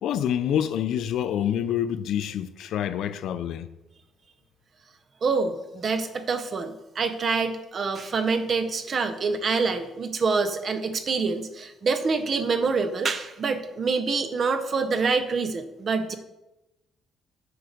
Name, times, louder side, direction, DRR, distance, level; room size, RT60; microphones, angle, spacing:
voice 1, 0.0-3.7, left 10 dB, 65° left, 0.4 m, -27 dB
voice 2, 5.2-16.1, right 4 dB, 35° right, 0.7 m, -26 dB
7.9 x 4.8 x 5.1 m
cardioid pair, 170°, 0 cm